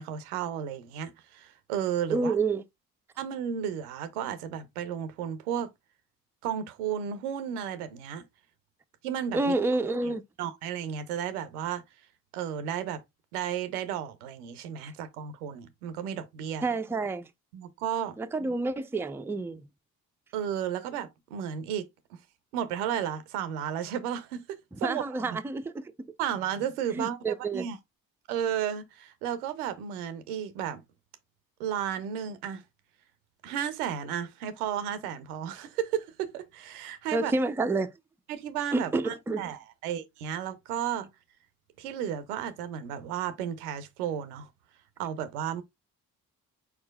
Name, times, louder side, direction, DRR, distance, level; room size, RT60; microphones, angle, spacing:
voice 1, 0.0-2.3 3.2-5.7 6.4-8.2 9.0-9.5 10.4-11.8 12.3-13.0 13.3-16.7 17.5-18.2 20.3-22.2 22.5-25.4 26.2-27.8 28.3-30.8 31.6-32.6 33.4-37.3 38.3-41.1 41.8-44.5 45.0-45.6, right 9 dB, 90° right, 0.6 m, -33 dB
voice 2, 2.1-2.6 9.3-10.2 16.6-17.3 18.2-19.6 24.8-26.1 26.9-27.7 37.1-37.9 38.7-39.4, right 3 dB, 5° right, 0.4 m, -29 dB
4.5 x 4.2 x 2.2 m
hypercardioid pair, 40°, 43 cm